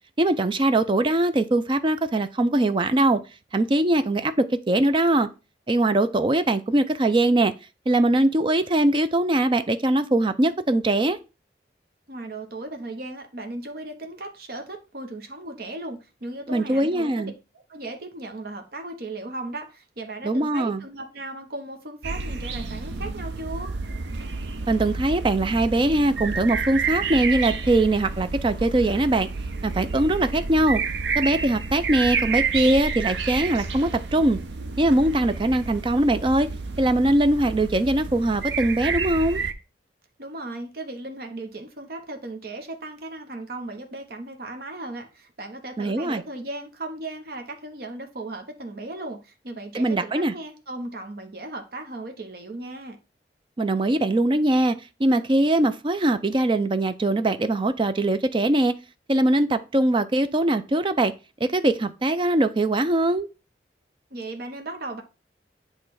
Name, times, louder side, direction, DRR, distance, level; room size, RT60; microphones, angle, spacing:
voice 1, 0.2-3.2 3.5-5.3 5.7-7.5 7.9-11.2 16.5-17.3 20.2-20.8 24.7-29.3 29.6-30.8 31.1-34.4 34.8-36.5 36.8-39.4 45.8-46.2 49.7-50.3 53.6-58.7 59.1-61.1 61.4-63.3, right 1 dB, 30° right, 0.5 m, -21 dB
voice 2, 12.1-17.3 17.7-23.7 40.2-53.0 64.1-65.0, right 2 dB, 60° right, 1.0 m, -36 dB
sound 1, 22.0-39.5, right 4 dB, 80° right, 0.7 m, -30 dB
8.3 x 3.2 x 4.7 m
head